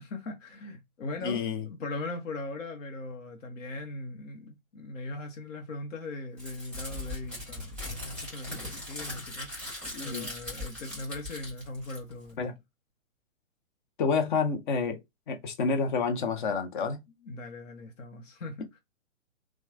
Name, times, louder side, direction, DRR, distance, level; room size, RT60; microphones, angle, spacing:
voice 1, 0.0-9.5 10.0-12.4 17.2-18.8, left 2 dB, 65° left, 0.9 m, -39 dB
voice 2, 1.2-1.7 9.9-10.3 12.4-12.5 14.0-15.0 15.3-17.0, left 5 dB, 40° left, 0.7 m, -29 dB
Crumpling crinkling, 6.4-12.3, left 1 dB, ahead, 1.2 m, -40 dB
2.9 x 2.2 x 2.4 m
hypercardioid pair, 135°, 40 cm